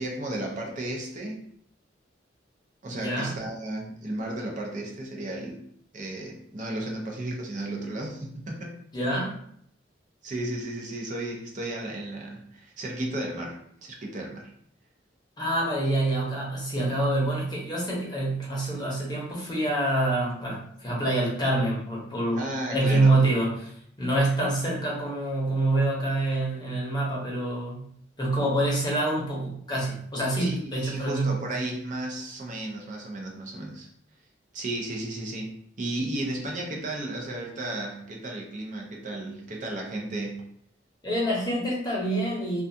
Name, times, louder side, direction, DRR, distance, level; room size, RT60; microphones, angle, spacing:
voice 1, 0.0-1.4 2.8-5.6 5.9-8.8 10.2-14.5 22.4-23.2 30.4-33.9 34.5-40.4, right 1 dB, 45° right, 0 dB, 0.6 m, -34 dB
voice 2, 2.9-3.3 8.9-9.3 15.4-22.4 22.7-23.7 24.0-27.8 28.2-31.3 41.0-42.6, right 1 dB, 25° left, -4 dB, 0.8 m, -26 dB
2.3 x 2.3 x 2.6 m, 0.66 s
head